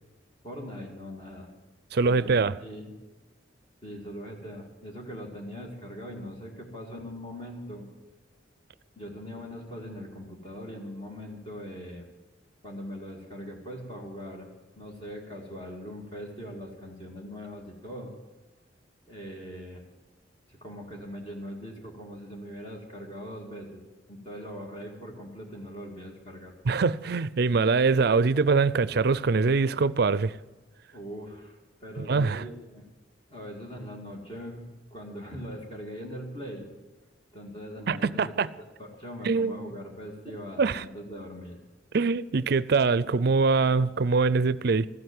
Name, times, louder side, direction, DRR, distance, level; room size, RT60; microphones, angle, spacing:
voice 1, 0.4-1.5 2.0-2.9 3.8-7.9 9.0-12.1 12.6-14.5 14.8-18.1 19.1-19.8 20.5-26.5 30.9-32.9 33.3-36.7 37.3-38.3 38.8-41.6, equal, 30° left, 2.2 m, -41 dB
voice 2, 1.9-2.6 26.6-30.4 32.0-32.4 37.9-38.5 39.2-39.7 40.6-40.8 41.9-44.9, right 4 dB, 55° right, 0.5 m, -23 dB
14.5 x 8.0 x 9.2 m
head